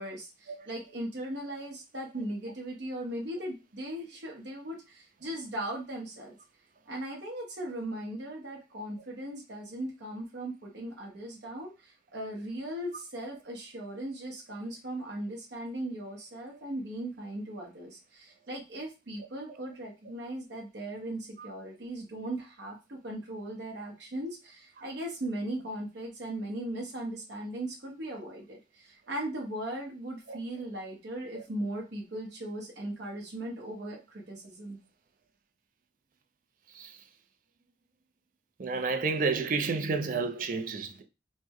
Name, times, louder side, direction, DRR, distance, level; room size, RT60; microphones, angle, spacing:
voice 1, 0.0-6.4 6.9-34.8, right 1 dB, 70° right, 0.7 m, -38 dB
voice 2, 38.6-41.0, right 4 dB, 45° right, 0.4 m, -30 dB
3.1 x 2.1 x 3.4 m
head